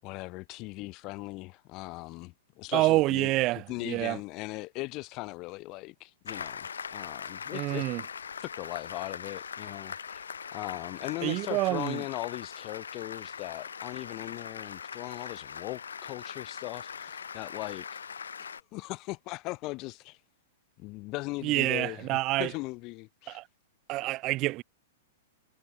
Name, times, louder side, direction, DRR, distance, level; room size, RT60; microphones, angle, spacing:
voice 1, 0.0-3.3 3.7-7.9 8.4-10.2 10.5-18.0 18.4-20.2 20.8-22.0 22.4-23.4, left 22 dB, 40° left, 6.0 m, -39 dB
voice 2, 2.7-4.2 7.5-8.0 11.2-12.0 21.4-22.5 23.3-23.5 23.9-24.6, right 19 dB, 40° right, 1.9 m, -27 dB
Applause, 6.3-18.6, left 6 dB, 80° left, 1.8 m, -41 dB
hypercardioid pair, 110°, 0 cm